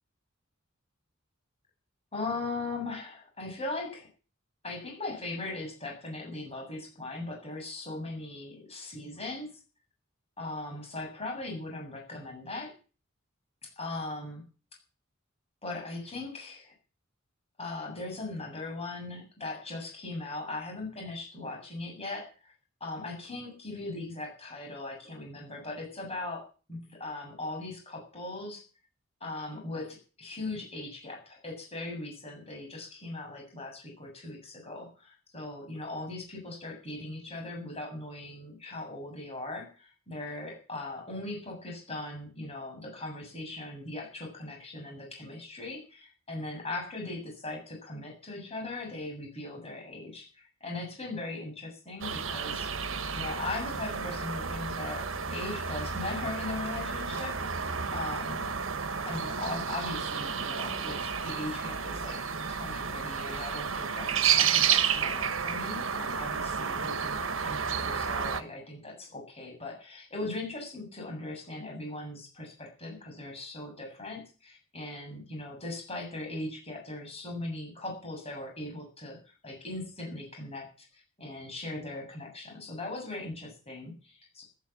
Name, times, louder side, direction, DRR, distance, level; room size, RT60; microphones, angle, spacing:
voice 1, 2.1-4.1 4.6-9.5 10.4-12.7 13.8-14.4 15.6-16.7 17.6-22.5 22.8-28.6 29.2-58.5 59.0-84.4, left 2 dB, 30° left, 0 dB, 7.5 m, -39 dB
sound 1, 52.0-68.4, right 7 dB, 70° right, 1.5 m, -31 dB
14.0 x 12.5 x 7.3 m, 0.37 s
head